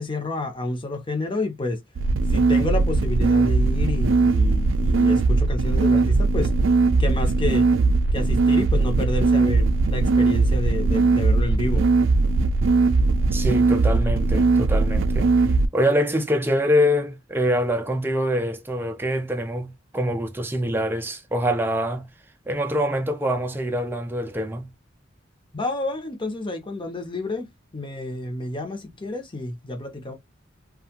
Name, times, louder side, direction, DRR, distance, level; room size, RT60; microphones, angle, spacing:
voice 1, 0.0-1.8 2.3-6.5 7.0-11.8 25.5-30.2, left 2 dB, 25° left, 0.8 m, -29 dB
sound 1, 2.0-15.7, right 3 dB, 65° right, 0.4 m, -19 dB
voice 2, 13.3-15.3 15.7-22.1 22.5-24.7, equal, 10° right, 0.4 m, -24 dB
2.6 x 2.4 x 2.8 m
head